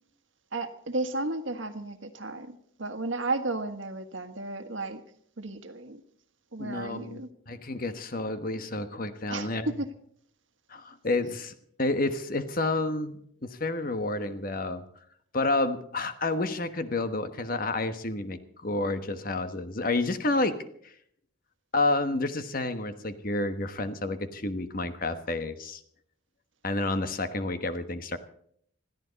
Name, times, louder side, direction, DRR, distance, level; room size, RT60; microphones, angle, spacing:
voice 1, 0.5-5.0 5.4-6.0 6.5-7.3 9.3-9.9, right 2 dB, 70° right, 9 dB, 1.6 m, -33 dB
voice 2, 6.6-9.7 10.7-14.8 15.3-20.6 20.8-20.9 21.7-25.8 26.6-28.2, left 2 dB, 45° left, 10 dB, 1.2 m, -30 dB
21.0 x 14.5 x 4.1 m, 0.66 s
head